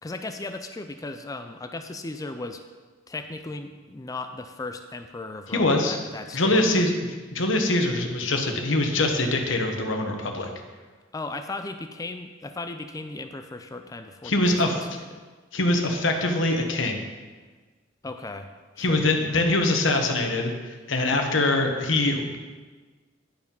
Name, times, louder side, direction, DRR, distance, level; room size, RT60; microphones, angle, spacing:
voice 1, 0.0-2.6 3.1-6.9 11.1-15.3 18.0-18.5 18.8-19.1, left 2 dB, 20° left, 7 dB, 0.4 m, -36 dB
voice 2, 5.5-6.0 6.3-6.9 7.3-10.5 14.2-14.8 15.5-17.0 18.8-22.4, left 2 dB, 70° left, 4 dB, 1.1 m, -23 dB
10.5 x 4.9 x 5.4 m, 1.4 s
head